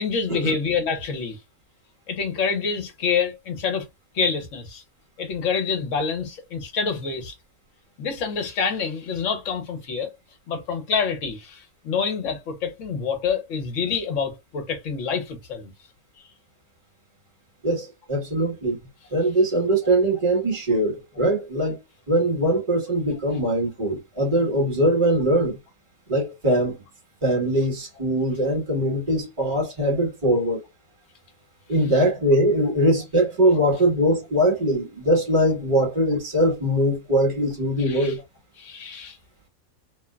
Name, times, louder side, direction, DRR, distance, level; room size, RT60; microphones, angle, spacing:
voice 1, 0.0-1.4 2.1-3.8 4.1-4.8 5.2-7.3 8.0-10.1 10.5-15.7 37.9-38.1 38.6-39.2, left 5 dB, 65° left, 1.1 m, -27 dB
voice 2, 17.6-18.8 19.1-21.8 22.1-25.6 26.1-26.8 27.2-30.6 31.7-38.2, right 1 dB, 20° right, 1.2 m, -21 dB
3.1 x 2.1 x 2.3 m
omnidirectional pair, 1.5 m